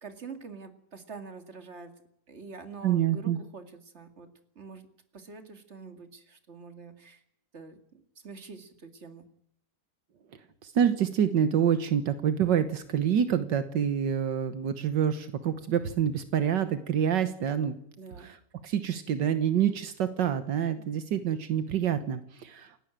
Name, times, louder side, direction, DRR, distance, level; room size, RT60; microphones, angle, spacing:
voice 1, 0.0-1.9 2.3-4.3 4.6-4.9 5.1-7.2 7.5-9.3 18.0-18.3, right 4 dB, 40° right, 7 dB, 2.5 m, -45 dB
voice 2, 2.8-3.4 10.6-17.7 18.2-18.4 18.6-22.8, right 9 dB, 80° right, 10 dB, 1.8 m, -27 dB
28.0 x 12.0 x 8.9 m, 0.73 s
omnidirectional pair, 1.9 m